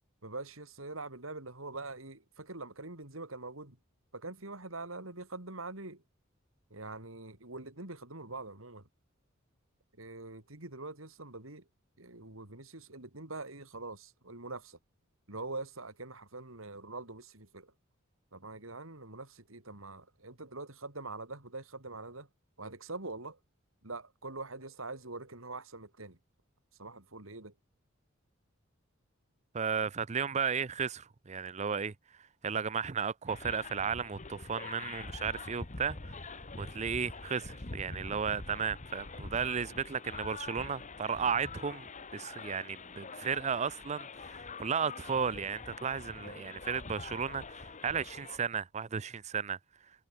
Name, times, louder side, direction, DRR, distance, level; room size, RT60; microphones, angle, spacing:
voice 1, 0.2-3.8 4.1-6.0 6.7-8.9 10.0-11.6 12.0-14.8 15.3-17.7 18.3-22.3 22.6-23.4 23.8-26.2 26.8-27.5, right 3 dB, 80° right, 4.4 m, -44 dB
voice 2, 29.5-31.9 32.4-36.3 36.6-49.6, right 6 dB, 35° right, 0.6 m, -34 dB
sound 1, 33.3-48.4, left 3 dB, 35° left, 1.5 m, -45 dB
head